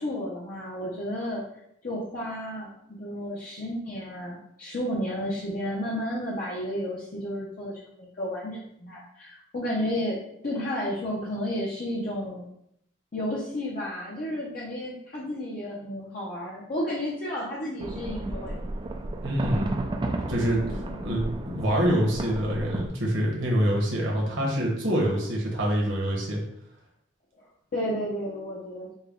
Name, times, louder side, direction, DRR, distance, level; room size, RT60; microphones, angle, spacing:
voice 1, 0.0-1.4 1.8-7.7 8.0-12.4 13.1-18.6 20.6-21.2 27.4-29.0, equal, 45° left, -5 dB, 0.7 m, -32 dB
sound 1, 17.8-22.9, right 2 dB, 25° right, 0.3 m, -33 dB
voice 2, 19.2-19.8 20.3-26.4, equal, 65° right, -2 dB, 1.1 m, -26 dB
5.4 x 2.2 x 3.6 m, 0.76 s
head